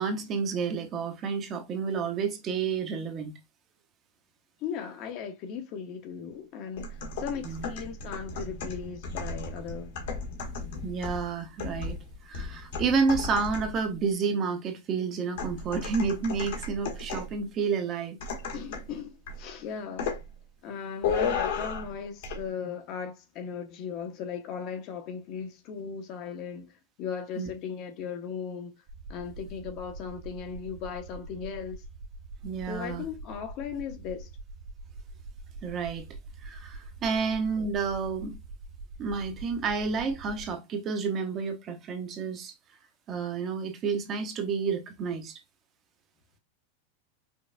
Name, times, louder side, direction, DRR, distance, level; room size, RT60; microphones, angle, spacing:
voice 1, 0.0-3.4 7.4-7.7 10.8-12.0 12.2-18.2 27.4-27.5 32.4-33.0 35.6-36.1 36.4-38.4 39.0-42.5 43.1-45.4, right 5 dB, 25° right, 0.6 m, -30 dB
voice 2, 4.6-10.0 18.5-20.1 20.6-28.7 29.1-31.8 32.7-34.3 37.1-37.2, left 7 dB, 35° left, 0.6 m, -37 dB
sound 1, 6.8-13.9 15.4-17.4 18.2-18.9 19.3-19.5 20.0-20.3 21.0-21.9 22.2-22.4, left 4 dB, 65° left, 1.2 m, -34 dB
sound 2, 28.9-40.5, right 2 dB, 45° right, 1.1 m, -44 dB
5.1 x 2.3 x 2.4 m
supercardioid pair, 165°, 0 cm